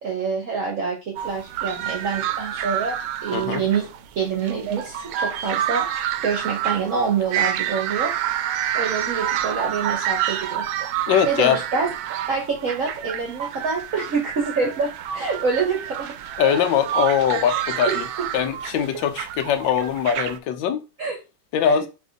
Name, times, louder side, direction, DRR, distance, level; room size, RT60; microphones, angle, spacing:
voice 1, 0.0-3.9 4.2-5.9 6.2-8.1 8.7-10.7 11.2-11.9 12.3-16.1 17.5-17.6 17.9-18.3 21.0-21.2 21.6-21.9, right 5 dB, 55° right, 1.0 m, -26 dB
sound 1, 1.2-20.4, right 11 dB, 85° right, 1.3 m, -28 dB
voice 2, 3.3-3.6 11.1-11.6 16.4-18.1 18.3-20.8 21.5-21.9, left 8 dB, 80° left, 1.3 m, -21 dB
4.3 x 3.0 x 3.9 m
omnidirectional pair, 2.1 m